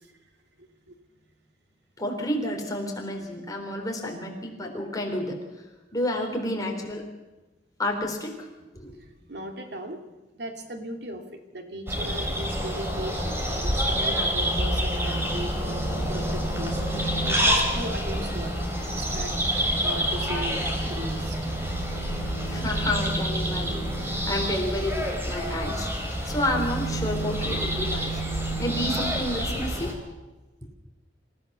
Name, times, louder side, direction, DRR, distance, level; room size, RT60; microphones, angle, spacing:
voice 1, 2.0-5.4 5.9-7.1 7.8-8.5 8.7-8.9 22.5-30.0, left 1 dB, 20° left, 1 dB, 4.0 m, -30 dB
voice 2, 8.9-11.2 11.5-18.5 19.0-20.6 20.9-21.5, right 1 dB, 65° right, 4 dB, 2.7 m, -38 dB
sound 1, 11.9-29.9, equal, 15° right, 3.9 m, -27 dB
27.5 x 15.5 x 6.9 m, 1.1 s
head